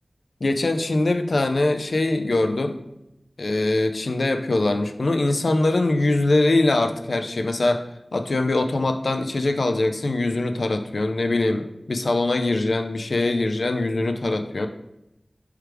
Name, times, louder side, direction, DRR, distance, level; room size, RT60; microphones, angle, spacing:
voice 1, 0.4-2.8 3.4-7.8 8.1-14.7, left 2 dB, 85° left, 7 dB, 0.4 m, -22 dB
3.3 x 3.2 x 4.6 m, 0.88 s
wide cardioid pair, 65°, 0 cm